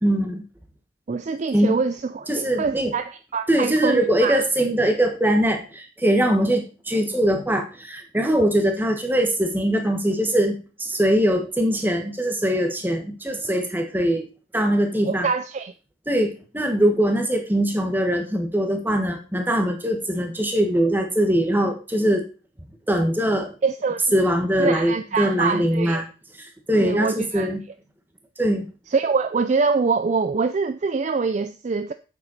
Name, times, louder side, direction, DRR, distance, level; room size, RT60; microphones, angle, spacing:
voice 1, 0.0-0.4 1.5-1.8 2.3-2.9 3.5-14.3 14.5-15.3 16.1-22.2 22.9-23.5 24.1-26.0 26.4-27.6 28.4-28.7, equal, 10° right, 1.3 m, -22 dB
voice 2, 1.1-4.4 15.0-15.7 23.6-24.0 24.6-26.0 26.8-27.5 28.9-31.9, right 4 dB, 35° right, 0.3 m, -24 dB
8.4 x 7.0 x 4.0 m
head